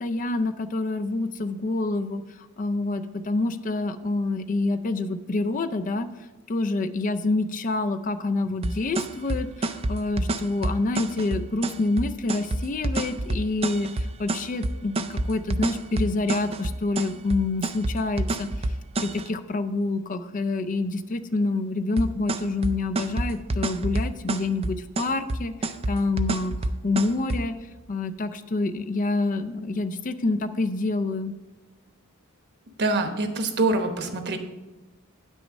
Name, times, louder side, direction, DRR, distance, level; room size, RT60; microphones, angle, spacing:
voice 1, 0.0-6.1 6.5-27.5 27.9-31.3, left 2 dB, 40° left, 9 dB, 0.4 m, -27 dB
sound 1, 8.6-19.3 22.0-27.4, right 2 dB, 30° right, 0.4 m, -27 dB
voice 2, 32.8-34.4, right 2 dB, 55° right, 6 dB, 1.0 m, -25 dB
9.0 x 6.3 x 5.3 m, 1.1 s
head